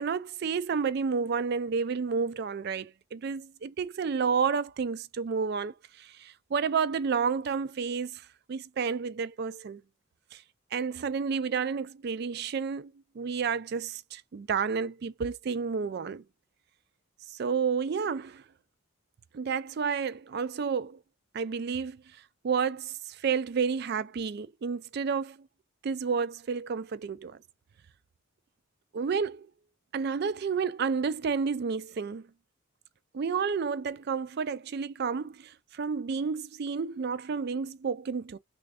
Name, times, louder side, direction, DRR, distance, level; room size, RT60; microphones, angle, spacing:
voice 1, 0.0-9.8 10.3-10.4 10.7-16.2 17.3-18.4 19.3-21.0 21.3-22.0 22.4-25.5 25.8-27.4 28.9-29.5 29.9-32.3 33.1-38.4, right 5 dB, 50° right, 0.3 m, -31 dB
3.4 x 2.4 x 3.4 m
head